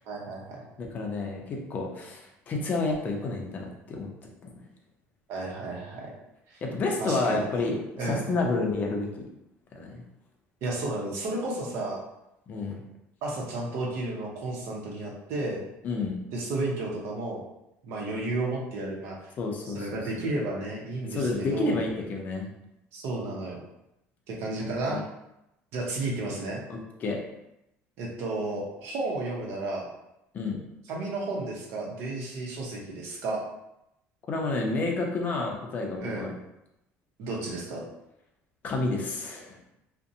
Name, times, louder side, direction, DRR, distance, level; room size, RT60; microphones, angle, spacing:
voice 1, 0.1-0.6 5.3-6.1 6.5-6.6 7.0-7.4 8.0-8.3 10.6-12.0 13.2-15.6 16.3-17.4 17.9-19.3 19.6-21.8 22.9-23.6 24.3-25.0 25.7-26.6 28.0-29.9 30.8-33.4 36.0-36.3 37.2-37.9, right 2 dB, 65° right, -2 dB, 0.7 m, -32 dB
voice 2, 0.8-4.1 6.6-9.1 9.8-10.0 12.5-12.8 15.8-16.2 19.4-19.9 21.1-22.5 24.6-25.0 26.7-27.2 30.3-30.6 34.3-36.3 38.6-39.5, left 3 dB, 35° left, 0 dB, 0.5 m, -30 dB
2.5 x 2.1 x 2.6 m, 0.86 s
cardioid pair, 150°, 5 cm